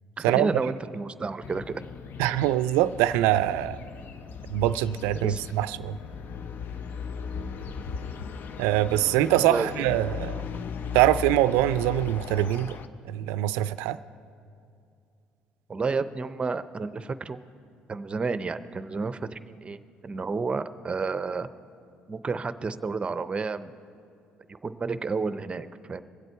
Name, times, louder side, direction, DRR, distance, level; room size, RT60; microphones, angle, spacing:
voice 1, 0.2-1.8 5.1-5.4 9.5-9.7 15.7-17.4 17.9-21.5 22.1-23.8 24.5-26.0, right 4 dB, 30° right, 13 dB, 0.6 m, -31 dB
sound 1, 1.4-12.9, left 6 dB, 60° left, 0.6 m, -37 dB
voice 2, 2.2-3.8 4.5-6.0 8.6-10.5 10.9-12.8 13.1-14.0, right 13 dB, 90° right, 15 dB, 0.3 m, -24 dB
22.5 x 8.1 x 4.5 m, 2.5 s
supercardioid pair, 75°, 4 cm